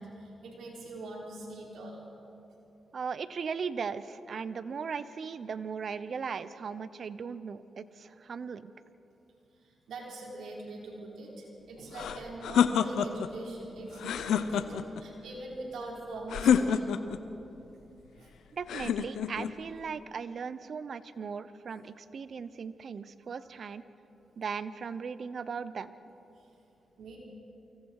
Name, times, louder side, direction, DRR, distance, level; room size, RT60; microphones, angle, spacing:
voice 1, 0.0-2.0 9.9-16.9 18.2-18.3 23.3-23.5 27.0-27.2, right 2 dB, 85° right, -2 dB, 5.1 m, -42 dB
voice 2, 2.9-8.7 18.5-23.8 24.4-25.9, right 6 dB, 65° right, 14 dB, 0.9 m, -38 dB
sound 1, 11.9-13.3 14.0-15.0 16.3-17.2 18.7-19.5, left 8 dB, 90° left, 0.8 m, -27 dB
29.0 x 24.5 x 4.9 m, 2.9 s
cardioid pair, 55°, 0 cm